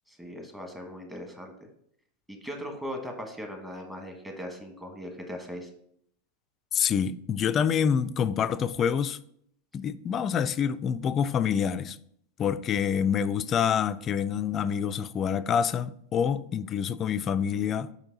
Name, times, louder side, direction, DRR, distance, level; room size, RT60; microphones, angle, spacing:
voice 1, 0.1-1.5 2.3-5.7, equal, 10° right, 1.2 m, -39 dB
voice 2, 6.7-9.2 9.7-12.0 12.4-17.9, left 7 dB, 35° left, 0.3 m, -27 dB
5.4 x 4.5 x 4.0 m
hypercardioid pair, 115°, 0 cm